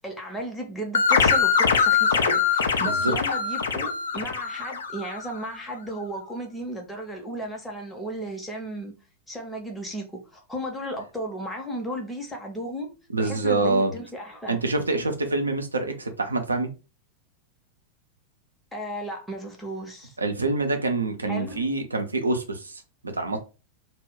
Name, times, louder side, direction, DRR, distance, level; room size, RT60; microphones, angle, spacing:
voice 1, 0.0-8.9 9.3-12.9 13.2-14.9 18.7-20.1 21.3-21.6, right 1 dB, 5° left, 0.7 m, -35 dB
sound 1, 0.9-5.3, left 6 dB, 70° left, 0.4 m, -23 dB
voice 2, 2.8-3.1 13.1-13.9 14.5-16.7 20.2-23.4, right 3 dB, 80° right, 0.5 m, -26 dB
2.2 x 2.0 x 3.6 m
figure-of-eight pair, 90°, 0 cm